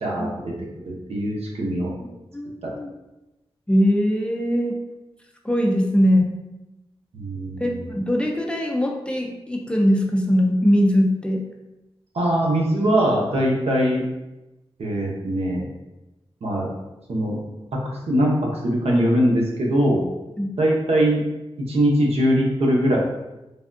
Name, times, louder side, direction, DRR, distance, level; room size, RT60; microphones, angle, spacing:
voice 1, 0.0-0.5 0.9-1.9 2.6-2.7 7.1-7.9 12.1-14.0 14.8-15.6 16.4-16.7 17.1-17.4 17.8-20.0 20.6-21.2 21.6-23.0, equal, 85° right, -2 dB, 0.7 m, -21 dB
voice 2, 2.3-2.9 3.7-4.8 5.4-6.4 7.6-11.4 20.4-20.5, equal, 10° left, 0 dB, 0.3 m, -21 dB
3.4 x 2.2 x 2.5 m, 0.98 s
wide cardioid pair, 105°, 10 cm